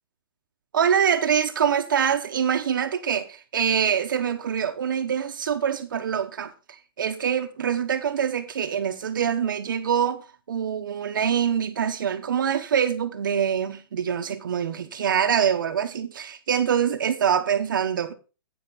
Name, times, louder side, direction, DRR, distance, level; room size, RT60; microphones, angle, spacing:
voice 1, 0.7-18.1, right 8 dB, 55° right, 1.1 m, -25 dB
9.9 x 8.8 x 4.1 m
hypercardioid pair, 180°, 13 cm